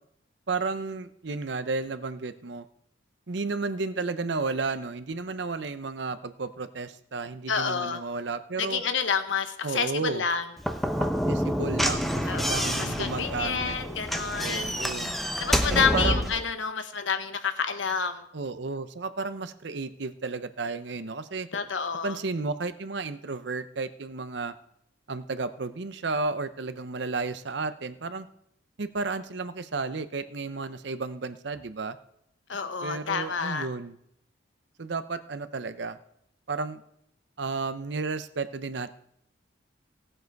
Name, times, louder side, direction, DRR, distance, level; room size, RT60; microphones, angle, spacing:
voice 1, 0.5-2.6 3.3-8.8 9.6-10.2 11.0-13.8 14.4-15.1 15.7-16.3 18.3-21.5 22.0-24.5 25.1-28.3 28.8-32.0 32.8-34.0 34.8-36.0 36.5-36.8 37.4-39.0, right 3 dB, 65° right, 12 dB, 0.7 m, -32 dB
voice 2, 7.5-8.0 8.6-10.4 12.3-14.7 15.4-18.2 21.5-22.2 32.5-33.7, left 6 dB, 85° left, 9 dB, 1.1 m, -29 dB
Slam / Knock, 10.6-16.4, equal, ahead, 0.7 m, -28 dB
17.0 x 7.9 x 4.6 m, 0.72 s
head